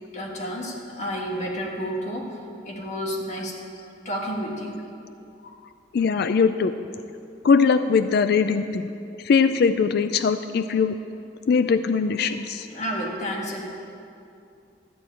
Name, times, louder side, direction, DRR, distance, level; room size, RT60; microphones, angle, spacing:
voice 1, 0.1-2.4 2.6-3.6 4.0-4.8 12.7-13.7, equal, 40° left, 0 dB, 1.6 m, -30 dB
voice 2, 5.9-6.7 7.4-8.9 9.2-10.9 11.5-12.7, left 5 dB, 60° left, 11 dB, 0.3 m, -21 dB
13.5 x 4.6 x 8.7 m, 2.6 s
head